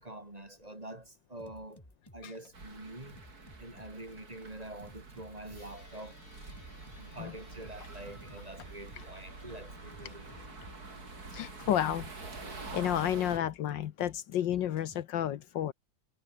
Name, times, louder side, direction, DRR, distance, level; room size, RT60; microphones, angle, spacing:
voice 1, 0.0-1.8 2.1-3.2 3.6-6.2 7.0-10.4, right 1 dB, 20° right, 3.3 m, -46 dB
sound 1, 1.4-15.0, equal, 10° left, 8.0 m, -56 dB
sound 2, 2.5-13.4, right 3 dB, 50° right, 4.2 m, -47 dB
sound 3, 5.6-13.0, left 2 dB, 40° left, 5.1 m, -59 dB
voice 2, 11.3-12.1 12.7-15.7, left 11 dB, 70° left, 1.5 m, -31 dB
omnidirectional pair, 2.1 m